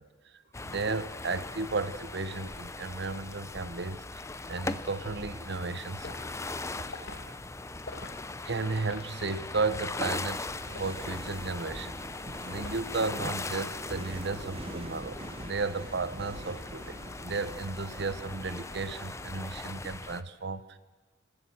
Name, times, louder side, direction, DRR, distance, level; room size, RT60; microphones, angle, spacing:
voice 1, 0.0-6.1 6.4-7.4 8.4-12.0 12.5-20.8, right 3 dB, 60° right, 14 dB, 0.9 m, -34 dB
sound 1, 0.5-20.2, left 3 dB, 15° left, 0.6 m, -40 dB
Liquid, 6.0-6.2 6.9-7.2 7.8-8.1 8.7-9.0 9.7-10.0 10.7-10.9 11.6-11.9 12.6-13.0 13.3-13.6, left 2 dB, 65° left, 2.0 m, -44 dB
sound 2, 10.5-19.4, right 1 dB, 30° right, 1.7 m, -45 dB
26.0 x 15.0 x 7.8 m, 1.3 s
head